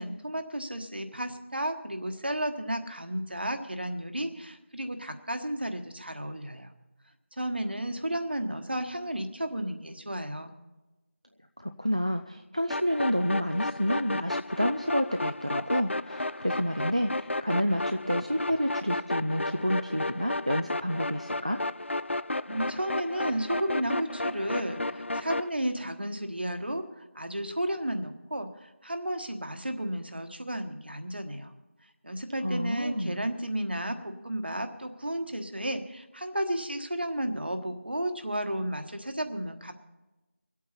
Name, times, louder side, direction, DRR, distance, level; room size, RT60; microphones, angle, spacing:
voice 1, 0.0-6.7 7.4-10.5 22.4-31.5 32.0-39.7, right 1 dB, 50° right, 7 dB, 1.3 m, -33 dB
voice 2, 11.6-21.6 32.4-33.2, equal, 30° right, 6 dB, 0.4 m, -29 dB
sound 1, 12.7-25.5, left 2 dB, 65° left, 0.3 m, -33 dB
25.5 x 8.6 x 4.3 m, 1.1 s
figure-of-eight pair, 175°, 7 cm